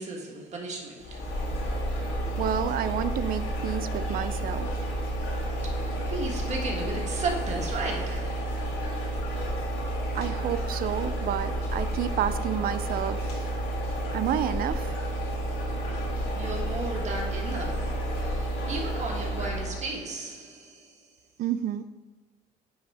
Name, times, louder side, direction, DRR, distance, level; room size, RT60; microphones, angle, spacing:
voice 1, 0.0-1.6 4.0-4.4 5.6-9.1 16.4-21.1, right 3 dB, 45° right, 1.6 m, -36 dB
sound 1, 1.0-19.9, right 1 dB, 80° left, 2.0 m, -30 dB
voice 2, 2.4-4.7 10.1-13.2 14.1-14.9 21.4-21.8, right 10 dB, 60° right, 0.4 m, -30 dB
9.5 x 3.4 x 4.2 m
cardioid pair, 110°, 17 cm